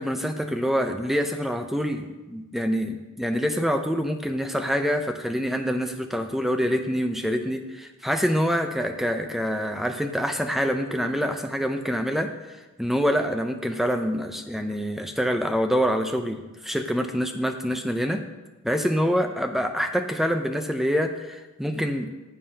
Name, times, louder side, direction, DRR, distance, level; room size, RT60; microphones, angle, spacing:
voice 1, 0.0-12.3 12.8-18.2 18.6-22.1, equal, ahead, 5 dB, 0.6 m, -26 dB
14.5 x 7.5 x 2.9 m, 1.1 s
head